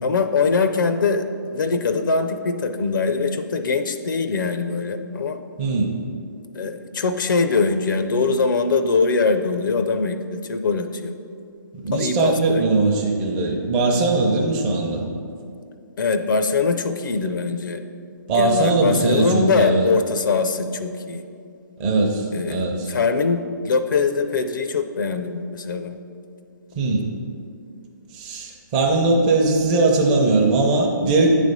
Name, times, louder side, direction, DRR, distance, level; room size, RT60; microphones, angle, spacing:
voice 1, 0.0-5.4 6.5-11.1 11.9-12.6 13.9-14.1 16.0-17.8 18.3-21.2 22.3-26.0, left 4 dB, 75° left, 8 dB, 0.5 m, -22 dB
voice 2, 5.6-6.0 11.7-15.0 18.3-19.9 21.8-22.9 26.8-27.1 28.1-31.3, right 3 dB, 25° right, -1 dB, 0.6 m, -20 dB
8.9 x 3.3 x 5.2 m, 2.4 s
hypercardioid pair, 160°, 11 cm